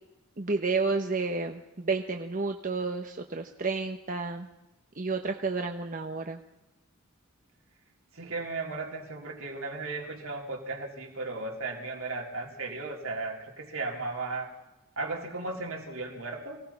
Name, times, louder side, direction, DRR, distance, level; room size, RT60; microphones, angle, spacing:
voice 1, 0.4-4.5 4.9-6.4, right 4 dB, 40° right, 4 dB, 1.0 m, -31 dB
voice 2, 8.1-14.5 15.0-16.6, right 3 dB, 70° right, 0 dB, 3.8 m, -35 dB
25.0 x 18.0 x 5.9 m, 0.99 s
head